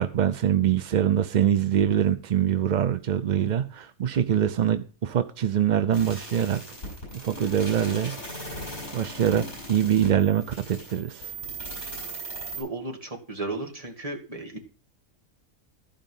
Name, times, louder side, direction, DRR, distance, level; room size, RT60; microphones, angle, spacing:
voice 1, 0.0-6.6 7.1-8.2 8.9-11.3, right 9 dB, 55° right, 0.5 m, -24 dB
sound 1, 5.9-12.6, right 1 dB, 55° left, 7.6 m, -38 dB
voice 2, 12.6-14.6, right 2 dB, 25° right, 2.1 m, -34 dB
14.5 x 5.1 x 5.4 m
omnidirectional pair, 1.4 m